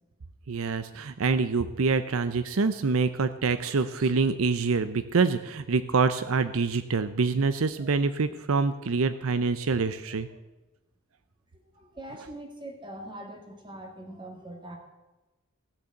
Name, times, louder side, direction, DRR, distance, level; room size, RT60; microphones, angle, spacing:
voice 1, 0.5-10.3, right 4 dB, 75° right, 12 dB, 0.6 m, -26 dB
voice 2, 11.5-14.8, right 1 dB, 20° right, 3 dB, 2.0 m, -43 dB
16.5 x 6.7 x 7.8 m, 1.1 s
head